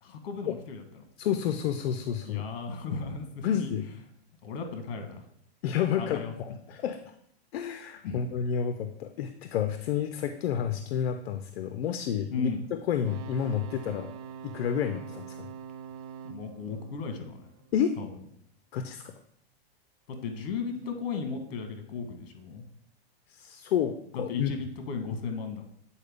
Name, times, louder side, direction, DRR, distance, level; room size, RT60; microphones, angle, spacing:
voice 1, 0.0-1.0 2.2-3.7 4.4-5.2 6.0-6.3 8.0-8.2 12.3-12.6 16.2-17.4 18.0-18.1 20.1-22.6 24.1-25.6, left 5 dB, 60° left, 6 dB, 1.5 m, -35 dB
voice 2, 1.2-2.5 3.4-3.9 5.6-7.0 7.5-14.1 14.4-15.5 17.7-18.0 18.7-19.1 23.3-24.5, left 8 dB, 80° left, 8 dB, 0.6 m, -30 dB
sound 1, 12.9-18.0 20.8-20.9, right 7 dB, 40° right, 0.4 m, -44 dB
8.1 x 4.3 x 3.5 m, 0.70 s
supercardioid pair, 150°, 31 cm